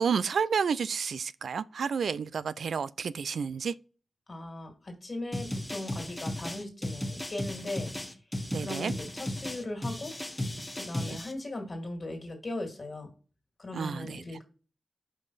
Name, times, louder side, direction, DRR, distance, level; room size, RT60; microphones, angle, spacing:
voice 1, 0.0-3.7 8.5-8.9 10.9-11.2 13.7-14.2, right 6 dB, 85° right, 0.3 m, -30 dB
voice 2, 4.3-7.9 8.6-10.2 10.8-13.1 13.6-14.4, left 2 dB, 35° left, 2.2 m, -38 dB
sound 1, 5.3-11.3, left 1 dB, 15° left, 0.9 m, -35 dB
5.5 x 5.0 x 4.0 m
wide cardioid pair, 120°, 0 cm